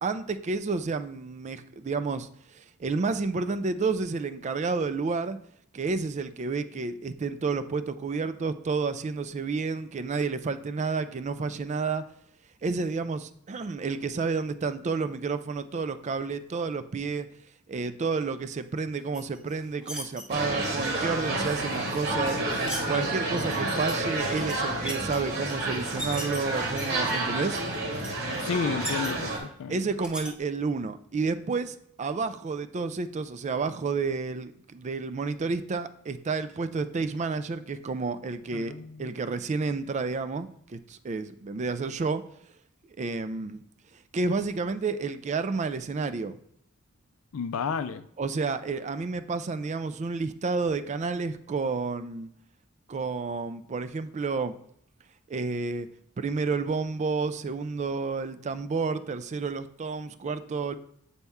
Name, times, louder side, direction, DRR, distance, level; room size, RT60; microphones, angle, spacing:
voice 1, 0.0-5.4 5.7-12.0 12.6-17.3 17.7-22.4 22.9-27.6 29.7-38.7 39.0-42.2 43.0-43.6 44.1-46.4 48.2-52.3 52.9-54.6 55.3-55.9 56.2-60.7, right 4 dB, 35° right, 11 dB, 0.3 m, -30 dB
sound 1, 19.1-20.2 21.9-22.8 23.4-23.9 24.3-25.2 25.7-26.4 26.8-27.2 27.5-27.6 27.9-28.1 28.4-29.4 30.0-30.3, equal, 5° right, 0.8 m, -38 dB
sound 2, 20.3-29.4, right 2 dB, 50° right, 1.4 m, -30 dB
voice 2, 28.5-29.8 38.5-39.1 47.3-48.1, left 6 dB, 70° left, 11 dB, 0.4 m, -32 dB
8.0 x 4.2 x 3.5 m, 0.69 s
head